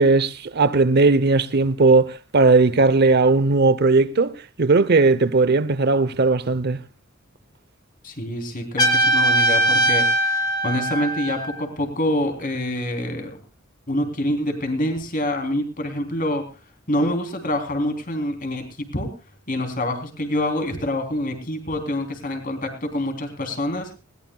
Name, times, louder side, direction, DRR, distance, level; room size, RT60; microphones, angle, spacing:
voice 1, 0.0-6.8, right 3 dB, 50° right, 0.8 m, -17 dB
voice 2, 8.0-13.4 13.9-16.4 16.9-19.1 19.5-24.0, left 1 dB, 40° left, 3.4 m, -26 dB
Trumpet, 8.8-11.6, right 1 dB, 20° left, 3.4 m, -20 dB
20.0 x 18.5 x 2.3 m
head